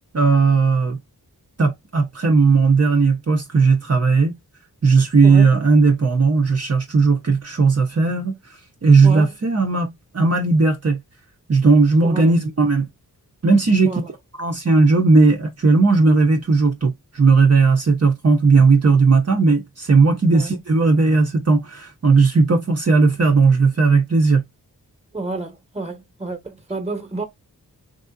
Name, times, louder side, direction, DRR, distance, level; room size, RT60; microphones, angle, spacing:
voice 1, 0.1-1.0 1.6-4.3 4.8-8.3 8.8-11.0 11.5-12.9 13.4-14.0 14.4-24.4, right 4 dB, 40° right, 1.1 m, -16 dB
voice 2, 9.0-9.3 12.0-12.4 13.8-14.0 20.3-20.5 25.1-27.3, right 3 dB, 15° right, 1.3 m, -29 dB
3.5 x 2.6 x 2.5 m
cardioid pair, 50°, 38 cm